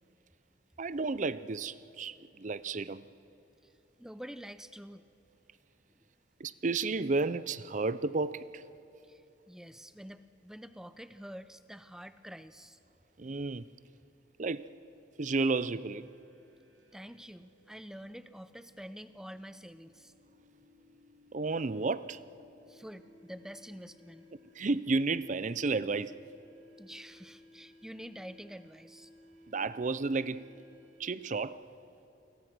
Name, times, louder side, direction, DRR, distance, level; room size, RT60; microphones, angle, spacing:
voice 1, 0.8-3.0 6.4-8.7 13.2-13.7 14.4-14.7 15.2-16.1 21.3-22.2 24.6-26.2 29.5-30.5 31.0-31.6, right 3 dB, 40° right, 0.5 m, -32 dB
voice 2, 4.0-5.0 6.0-6.1 9.0-12.8 16.9-20.1 22.7-24.3 26.8-29.1, equal, 5° right, 0.6 m, -47 dB
sound 1, 15.5-31.4, left 1 dB, 90° right, 2.7 m, -60 dB
28.5 x 22.0 x 6.2 m
head